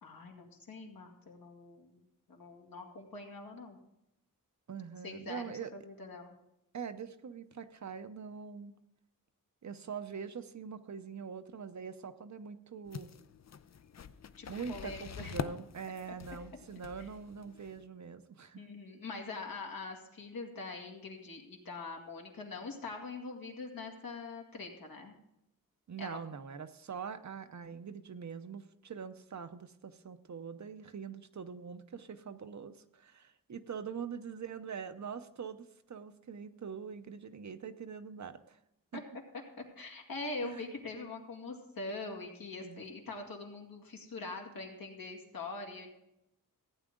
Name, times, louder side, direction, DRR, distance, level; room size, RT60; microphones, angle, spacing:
voice 1, 0.0-2.0 2.3-3.8 5.0-6.3 14.4-15.3 17.0-17.1 18.6-25.2 26.0-26.2 38.9-39.0 39.3-45.9, left 3 dB, 80° left, 1 dB, 2.2 m, -43 dB
voice 2, 4.7-5.7 6.7-8.7 9.6-13.1 14.5-18.6 25.9-38.6 38.9-39.0 40.4-40.6 42.6-42.8, right 6 dB, 55° right, 10 dB, 0.7 m, -43 dB
sound 1, 12.9-17.8, left 7 dB, 50° left, 0.5 m, -45 dB
15.0 x 8.9 x 3.8 m, 0.84 s
wide cardioid pair, 120°, 35 cm